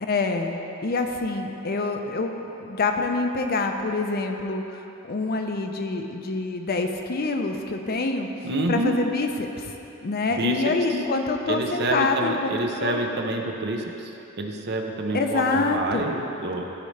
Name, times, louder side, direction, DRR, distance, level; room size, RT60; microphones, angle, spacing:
voice 1, 0.0-2.3 2.6-4.8 5.1-8.3 8.7-13.0 15.1-16.1, left 3 dB, 45° left, 4 dB, 0.6 m, -26 dB
voice 2, 8.4-8.9 10.4-10.6 11.5-14.1 14.4-16.7, right 2 dB, 55° right, 3 dB, 0.7 m, -27 dB
14.0 x 5.3 x 3.3 m, 3.0 s
head